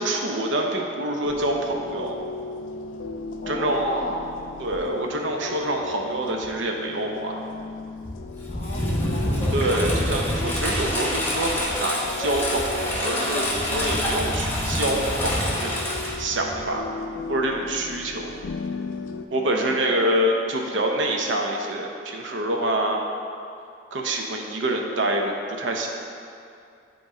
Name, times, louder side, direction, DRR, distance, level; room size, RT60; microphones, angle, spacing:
voice 1, 0.0-2.2 3.5-4.0 4.6-7.4 9.5-15.8 16.2-16.8 17.3-18.3 19.3-23.0 23.9-25.9, right 1 dB, 75° right, 1 dB, 0.7 m, -26 dB
sound 1, 1.2-19.2, left 3 dB, 85° left, 0.4 m, -37 dB
voice 2, 3.4-4.3 8.5-9.5 19.3-20.0, left 1 dB, 40° left, 0 dB, 0.7 m, -34 dB
Engine, 8.0-16.8, left 1 dB, 10° left, 0.8 m, -26 dB
7.9 x 3.1 x 4.8 m, 2.5 s
head